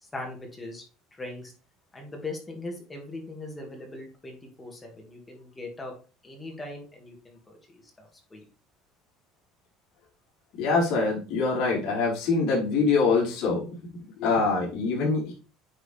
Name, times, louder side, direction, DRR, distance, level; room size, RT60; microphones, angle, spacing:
voice 1, 0.1-0.8 1.2-1.5 1.9-5.9 6.2-8.4, left 2 dB, 15° left, 0 dB, 2.5 m, -40 dB
voice 2, 10.6-13.7 14.2-15.3, left 4 dB, 60° left, -5 dB, 4.7 m, -24 dB
9.4 x 4.9 x 3.6 m, 0.36 s
cardioid pair, 135°, 0 cm